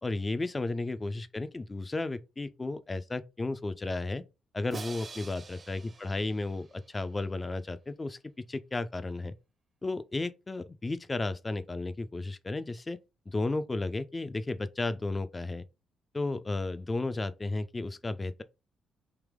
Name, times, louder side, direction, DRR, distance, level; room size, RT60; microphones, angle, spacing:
voice 1, 0.0-4.2 4.5-8.2 8.5-9.3 9.8-13.0 13.3-15.6 16.1-18.4, left 2 dB, 20° left, 0.3 m, -33 dB
Crash cymbal, 4.7-6.9, right 4 dB, 35° right, 0.6 m, -46 dB
3.3 x 3.0 x 3.5 m
cardioid pair, 90°, 0 cm